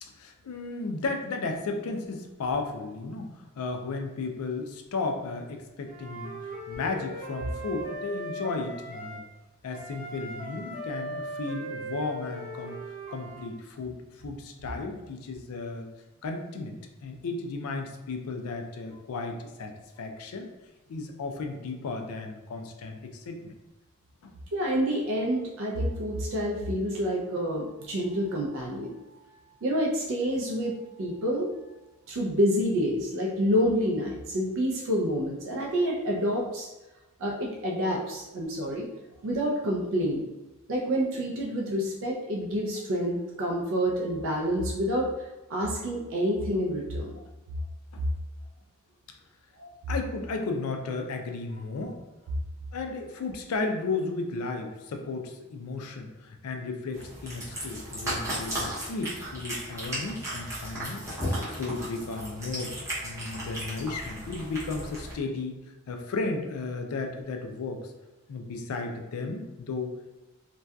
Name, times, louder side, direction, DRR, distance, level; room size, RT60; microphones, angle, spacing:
voice 1, 0.0-9.3 9.6-12.8 13.1-15.9 16.2-20.5 20.9-23.5 24.2-24.3 47.9-48.0 49.9-52.0 52.7-61.1 61.5-62.7 63.0-65.6 65.9-67.9 68.3-70.2, left 3 dB, 70° left, 4 dB, 0.4 m, -34 dB
Wind instrument woodwind instrument, 5.8-9.2 9.7-13.5, right 1 dB, 45° right, 1.0 m, -39 dB
voice 2, 24.5-28.9 29.6-31.5 32.1-36.7 37.2-38.9 39.2-40.2 40.7-45.1 45.5-47.2 49.6-49.7, equal, 65° right, -2 dB, 0.4 m, -28 dB
Cat, 56.9-65.1, right 1 dB, 15° right, 0.7 m, -35 dB
2.6 x 2.2 x 2.2 m, 1.0 s
head